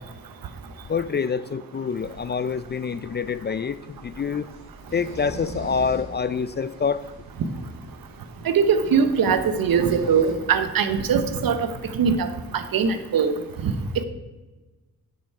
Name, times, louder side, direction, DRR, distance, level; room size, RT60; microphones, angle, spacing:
voice 1, 0.9-4.5 4.9-7.0, left 6 dB, 30° left, 15 dB, 0.4 m, -26 dB
sound 1, 1.9-10.3, right 2 dB, 50° right, 2.8 m, -43 dB
voice 2, 8.4-11.6 11.9-12.3 12.5-13.3 13.6-13.7, right 6 dB, 70° right, 10 dB, 1.0 m, -21 dB
9.2 x 6.7 x 4.7 m, 1.2 s
cardioid pair, 70°, 36 cm